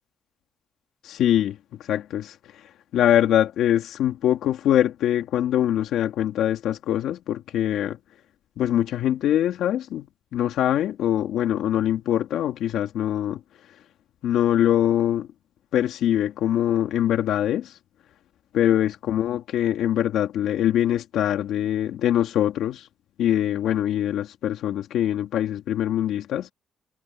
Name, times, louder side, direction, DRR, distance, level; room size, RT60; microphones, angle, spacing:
voice 1, 1.0-2.6 2.9-8.0 8.6-10.1 10.3-13.4 14.2-15.3 15.7-17.8 18.5-22.9 23.2-26.5, left 11 dB, 80° left, 2.6 m, -23 dB
cardioid pair, 90°, 0 cm